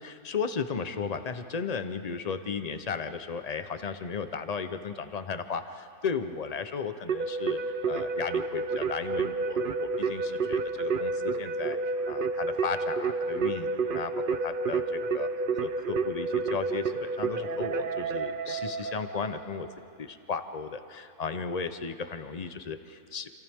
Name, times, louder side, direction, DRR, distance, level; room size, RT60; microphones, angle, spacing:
voice 1, 0.0-7.6 7.9-11.8 12.1-14.1 14.4-15.3 15.6-19.7 20.0-23.3, left 5 dB, 40° left, 10 dB, 0.6 m, -35 dB
Keyboard (musical), 7.1-19.5, right 4 dB, 50° right, 0.6 m, -30 dB
28.5 x 26.0 x 3.6 m, 2.5 s
omnidirectional pair, 1.6 m